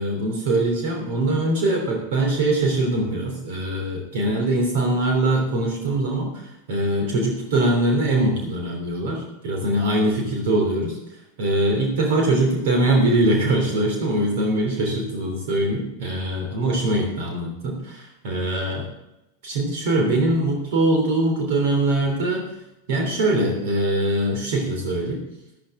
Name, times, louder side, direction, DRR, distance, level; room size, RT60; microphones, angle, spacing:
voice 1, 0.0-6.3 6.7-11.0 11.4-18.8 19.4-22.4 22.9-25.2, right 1 dB, 50° right, 1 dB, 3.1 m, -22 dB
13.0 x 12.5 x 3.7 m, 0.91 s
figure-of-eight pair, 90°, 0 cm